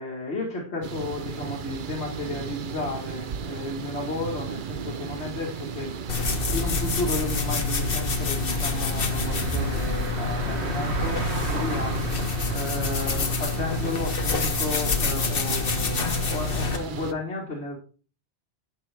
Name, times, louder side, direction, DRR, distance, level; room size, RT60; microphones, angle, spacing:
voice 1, 0.0-5.9 6.5-17.8, left 2 dB, 80° left, 0 dB, 1.9 m, -33 dB
sound 1, 0.8-17.1, right 7 dB, 55° right, 0.8 m, -35 dB
sound 2, 1.3-16.8, right 3 dB, 85° right, 1.7 m, -37 dB
sound 3, 6.1-16.8, left 4 dB, 60° left, 1.3 m, -27 dB
11.0 x 7.6 x 3.4 m, 0.40 s
omnidirectional pair, 1.1 m